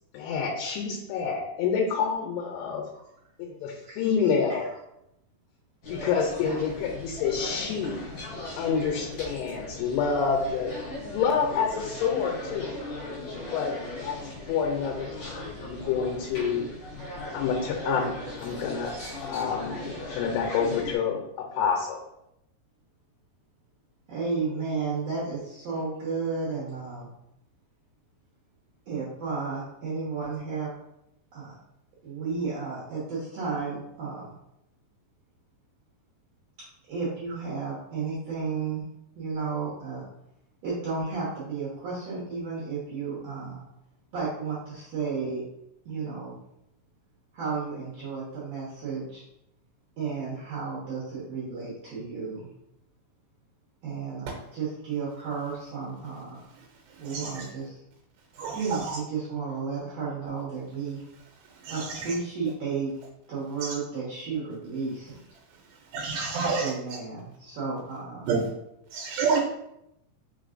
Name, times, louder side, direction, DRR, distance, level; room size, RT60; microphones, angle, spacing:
voice 1, 0.1-2.8 3.4-4.7 5.9-8.0 8.6-10.7 11.0-12.7 13.5-13.7 14.0-14.2 14.5-16.7 17.3-18.9 19.2-22.0, left 6 dB, 90° left, 1 dB, 2.7 m, -28 dB
voice 2, 3.8-4.8 24.1-27.1 28.9-30.7 31.3-31.5 32.0-34.3 36.9-38.8 39.1-40.0 40.6-43.6 44.1-45.4 45.8-46.3 47.3-49.2 50.0-52.5 53.8-56.5 57.0-57.8 58.5-61.0 61.7-62.9 63.3-65.2 66.6-68.3, right 4 dB, 70° right, -8 dB, 1.6 m, -33 dB
sound 1, 5.8-21.0, left 1 dB, 55° left, 2.2 m, -38 dB
voice 3, 56.9-57.5 58.4-59.0 61.5-62.1 63.6-63.7 65.9-66.7 68.3-68.5 68.9-69.4, right 4 dB, 85° right, 0 dB, 2.8 m, -29 dB
5.5 x 3.7 x 2.5 m, 0.82 s
omnidirectional pair, 4.7 m